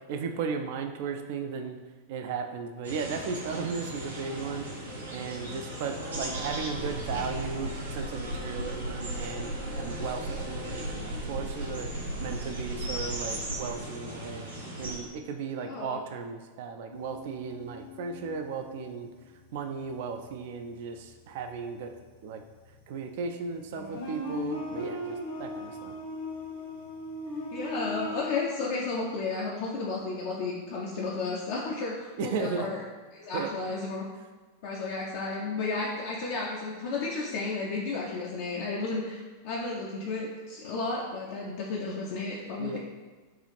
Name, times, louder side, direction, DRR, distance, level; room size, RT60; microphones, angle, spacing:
voice 1, 0.1-1.8 2.1-4.7 5.1-11.9 12.2-14.5 14.8-19.1 19.5-21.9 22.2-22.4 22.9-25.9 32.2-32.7 33.3-33.5 42.6-42.8, right 5 dB, 50° right, 5 dB, 0.4 m, -35 dB
sound 1, 2.8-15.0, right 1 dB, 75° right, 0.9 m, -36 dB
voice 2, 15.6-16.0 27.5-32.8 33.1-34.0 34.6-42.8, left 3 dB, 50° left, -4 dB, 0.5 m, -33 dB
sound 2, 16.9-19.4 19.8-20.1 22.7-22.8 23.4-28.3, left 1 dB, 65° left, 1.0 m, -38 dB
4.6 x 2.4 x 3.2 m, 1.3 s
figure-of-eight pair, 90°, 0 cm